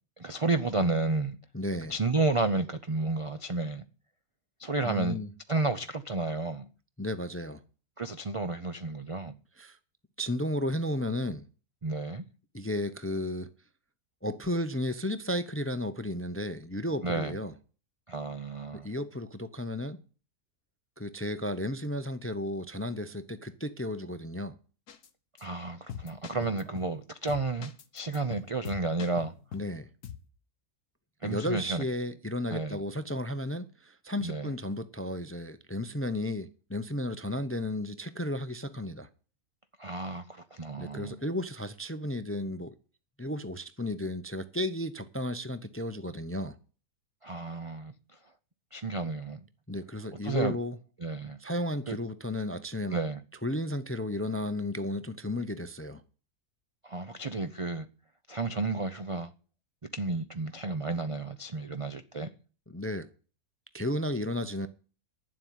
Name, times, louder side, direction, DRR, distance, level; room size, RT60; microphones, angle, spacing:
voice 1, 0.2-1.4 1.9-3.8 4.6-5.2 5.5-6.7 8.0-9.4 11.8-12.2 17.0-17.4 18.1-18.9 25.4-29.3 31.2-31.8 32.5-32.8 34.2-34.5 39.8-41.2 47.2-48.2 48.7-49.4 50.1-50.6 51.0-51.4 51.9-52.0 52.9-53.2 56.8-57.9 58.3-59.3 59.9-62.3, right 3 dB, 40° right, 0.4 m, -31 dB
voice 2, 1.5-1.9 4.8-5.3 7.0-7.6 9.6-9.8 10.2-11.4 12.5-13.5 14.2-17.5 18.7-20.0 21.0-24.5 29.5-29.9 31.2-39.1 40.8-42.7 43.2-46.6 49.7-50.8 51.4-53.0 53.4-56.0 62.7-63.1 63.7-64.7, left 1 dB, 15° left, 0.5 m, -33 dB
sound 1, 24.9-25.1 25.4-25.5 25.9-27.0 27.3-29.7 30.0-30.3, left 8 dB, 80° left, 1.7 m, -43 dB
11.0 x 7.6 x 9.3 m
omnidirectional pair, 1.6 m